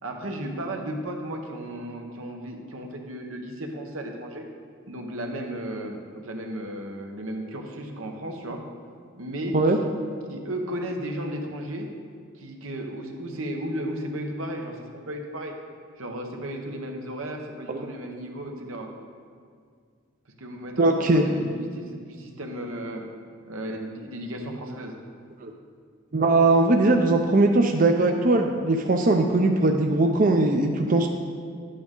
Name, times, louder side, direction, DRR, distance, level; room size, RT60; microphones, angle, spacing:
voice 1, 0.0-4.5 4.9-8.6 9.2-9.6 10.3-11.9 12.4-15.5 16.0-18.9 20.4-23.1 23.5-25.0, right 1 dB, 85° right, 2 dB, 1.1 m, -34 dB
voice 2, 20.8-21.3 25.4-25.5 26.1-31.1, right 2 dB, 40° right, 3 dB, 0.5 m, -20 dB
11.0 x 8.6 x 3.8 m, 2.1 s
head